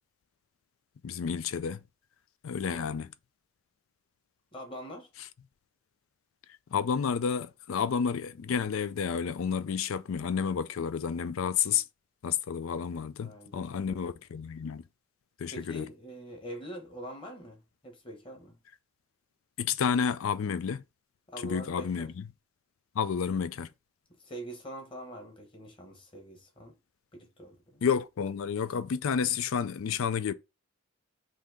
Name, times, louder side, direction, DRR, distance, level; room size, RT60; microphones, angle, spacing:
voice 1, 1.0-1.8 2.4-3.1 6.7-11.8 12.2-14.8 15.4-15.9 19.6-20.8 21.4-22.3 23.0-23.7 27.8-30.3, left 7 dB, 75° left, 0.4 m, -30 dB
voice 2, 2.6-3.0 4.5-5.1 13.2-14.0 15.5-18.6 21.3-22.1 24.2-26.7 27.1-27.8, right 1 dB, 25° left, 1.1 m, -44 dB
3.9 x 2.7 x 4.8 m
head